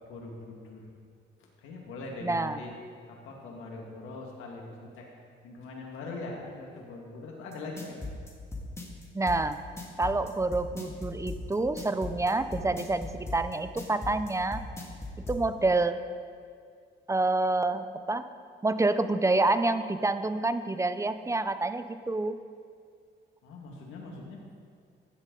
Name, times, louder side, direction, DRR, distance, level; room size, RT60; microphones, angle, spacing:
voice 1, 0.1-0.9 1.6-2.8 3.1-5.0 5.4-8.0 23.4-24.4, left 3 dB, 90° left, -1 dB, 2.0 m, -42 dB
voice 2, 2.2-2.6 9.1-9.6 10.0-14.6 15.3-16.0 17.1-18.3 18.6-22.4, right 2 dB, 15° right, 11 dB, 0.6 m, -27 dB
sound 1, 7.5-15.4, left 3 dB, 15° left, 2.2 m, -38 dB
15.0 x 11.0 x 4.0 m, 2.2 s
cardioid pair, 90°, 20 cm